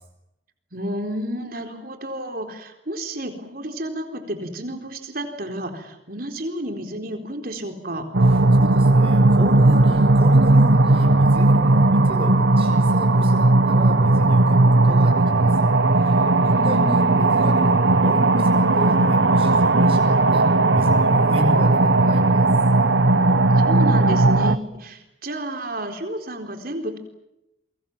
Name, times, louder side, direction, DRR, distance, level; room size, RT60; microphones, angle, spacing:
voice 1, 0.7-8.1 16.4-16.9 23.6-27.0, right 1 dB, 50° right, 5 dB, 4.1 m, -31 dB
sound 1, 8.1-24.6, right 2 dB, 75° right, 1.1 m, -17 dB
voice 2, 8.5-20.4 20.7-22.5, equal, 30° right, 2 dB, 5.8 m, -32 dB
29.5 x 23.5 x 7.4 m, 0.86 s
head